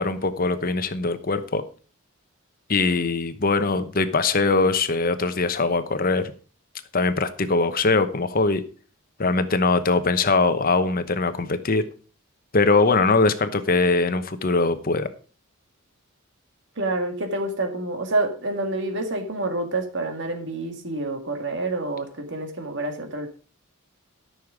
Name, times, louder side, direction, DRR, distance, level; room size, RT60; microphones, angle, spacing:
voice 1, 0.0-1.6 2.7-6.3 6.9-8.6 9.2-11.8 12.5-15.1, left 3 dB, 45° left, 11 dB, 1.0 m, -21 dB
voice 2, 16.8-23.3, right 2 dB, 60° right, 6 dB, 2.0 m, -28 dB
13.0 x 6.6 x 5.0 m, 0.38 s
head